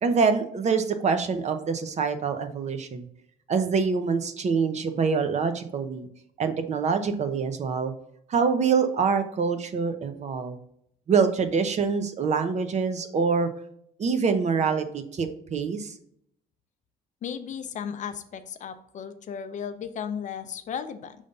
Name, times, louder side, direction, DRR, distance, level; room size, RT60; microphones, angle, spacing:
voice 1, 0.0-3.1 3.5-6.1 6.4-7.9 8.3-10.6 11.1-13.5 14.0-15.9, right 5 dB, 40° right, 8 dB, 0.8 m, -25 dB
voice 2, 17.2-21.2, left 7 dB, 45° left, 10 dB, 0.6 m, -35 dB
5.4 x 3.3 x 5.2 m, 0.70 s
cardioid pair, 110°, 17 cm